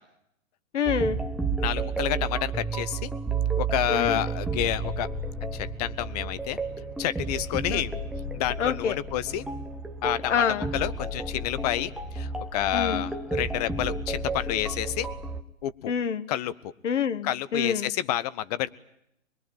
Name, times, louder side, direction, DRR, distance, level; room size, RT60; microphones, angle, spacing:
voice 1, 0.7-1.2 3.9-4.2 7.7-7.8 8.6-9.0 10.3-10.7 12.7-13.0 15.9-16.2 16.8-17.9, left 7 dB, 65° left, 14 dB, 1.6 m, -27 dB
sound 1, 0.9-15.4, right 3 dB, ahead, 0.9 m, -32 dB
voice 2, 1.6-3.1 3.6-5.1 5.5-6.6 7.0-8.0 8.3-9.5 10.0-15.1 15.6-15.9 16.3-16.5 17.2-18.7, left 12 dB, 30° left, 17 dB, 1.0 m, -29 dB
24.0 x 22.5 x 8.8 m, 0.79 s
figure-of-eight pair, 130°, 40 cm